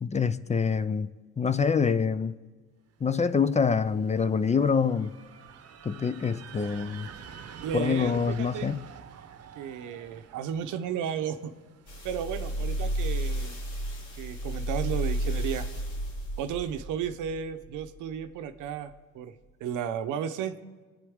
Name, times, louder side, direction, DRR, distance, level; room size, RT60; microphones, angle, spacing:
voice 1, 0.0-1.1 1.4-2.3 3.0-5.1 5.8-7.1 7.7-8.8, left 5 dB, 25° left, 13 dB, 0.5 m, -25 dB
sound 1, 3.2-13.0, right 7 dB, 55° right, 0.8 m, -48 dB
voice 2, 6.5-7.0 7.6-8.7 9.6-11.5 12.0-13.6 14.2-15.7 16.4-19.3 19.6-20.5, right 8 dB, 90° right, 9 dB, 0.8 m, -34 dB
sound 2, 11.9-18.3 18.9-19.0, equal, 75° left, 4.2 m, -32 dB
26.0 x 8.8 x 3.6 m, 1.4 s
cardioid pair, 90°, 30 cm